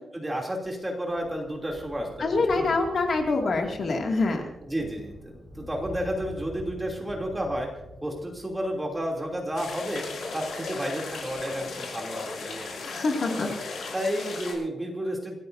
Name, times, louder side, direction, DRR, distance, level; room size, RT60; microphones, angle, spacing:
voice 1, 0.1-2.7 4.6-7.7 8.0-10.0 10.3-12.7 13.3-13.5 13.9-15.4, equal, 10° right, 0 dB, 3.0 m, -31 dB
Thunder, 0.6-13.5 14.4-14.5, equal, 10° left, 5.1 m, -47 dB
voice 2, 2.2-4.4 12.8-13.9, left 3 dB, 45° left, 1 dB, 2.3 m, -26 dB
sound 1, 9.5-14.5, left 4 dB, 85° left, 5.0 m, -36 dB
28.5 x 14.5 x 2.7 m, 0.91 s
wide cardioid pair, 165°, 0 cm